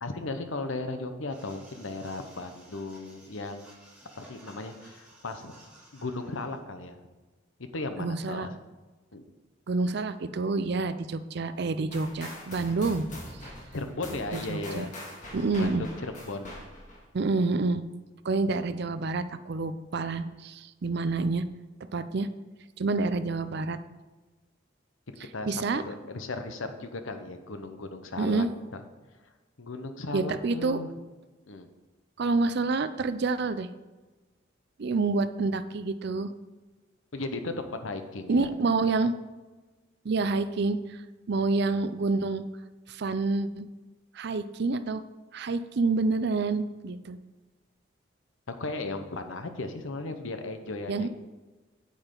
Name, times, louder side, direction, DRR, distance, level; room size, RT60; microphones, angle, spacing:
voice 1, 0.0-3.7 4.1-5.5 5.9-7.0 7.7-8.5 9.1-9.3 13.7-14.9 15.6-16.5 25.1-28.4 28.7-28.8 29.6-30.9 31.5-31.7 37.1-38.5 48.5-51.1, left 2 dB, 80° left, 7 dB, 1.0 m, -36 dB
sound 1, 1.3-6.6, right 1 dB, 5° right, 2.9 m, -55 dB
voice 2, 8.0-8.5 9.7-13.1 13.4-13.5 14.3-14.8 15.3-15.8 17.1-17.8 18.2-21.5 21.9-22.3 22.8-23.8 25.5-25.8 28.2-28.5 30.1-30.8 32.2-33.7 34.8-36.3 38.3-39.1 40.0-40.8 41.3-42.4 42.9-43.7 44.1-45.0 45.3-47.2 50.9-51.1, right 3 dB, 55° right, 12 dB, 0.5 m, -28 dB
sound 2, 11.9-17.0, left 1 dB, 40° left, 2.3 m, -43 dB
8.9 x 8.4 x 3.9 m, 1.2 s
head